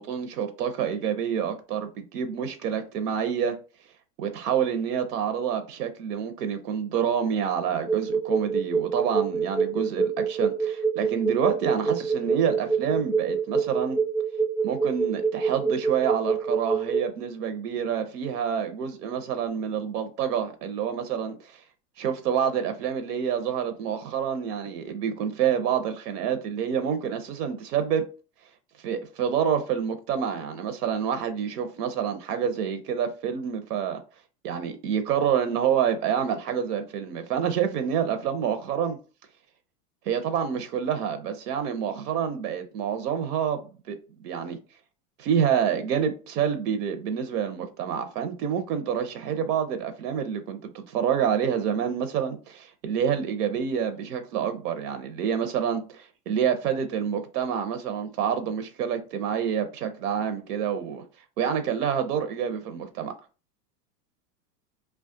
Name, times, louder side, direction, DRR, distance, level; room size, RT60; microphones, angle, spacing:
voice 1, 0.0-3.6 4.2-14.0 14.6-21.6 22.0-28.1 28.8-34.0 34.4-39.0 40.1-43.6 43.9-44.0 44.2-44.6 45.2-61.0 61.4-63.1, right 8 dB, 80° right, 0.6 m, -27 dB
sound 1, 7.9-17.0, right 5 dB, ahead, 0.4 m, -25 dB
2.3 x 2.1 x 2.5 m
hypercardioid pair, 125°, 47 cm